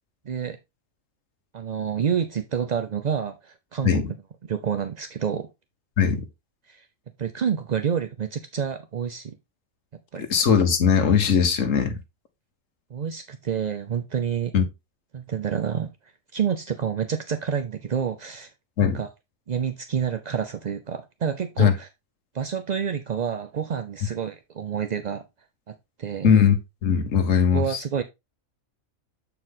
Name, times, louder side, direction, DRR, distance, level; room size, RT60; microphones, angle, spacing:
voice 1, 0.3-0.6 1.5-4.0 4.5-5.5 6.7-6.9 7.2-9.4 10.1-10.3 12.9-14.5 15.1-15.9 16.3-18.5 18.8-19.1 19.5-21.9 22.3-25.2 25.7-26.3 27.5-28.0, right 7 dB, 55° right, 0.4 m, -28 dB
voice 2, 10.3-11.9 14.5-14.6 18.8-19.0 21.6-21.7 26.2-26.6 26.8-27.8, left 7 dB, 65° left, 1.5 m, -19 dB
7.8 x 4.7 x 3.7 m
omnidirectional pair, 1.4 m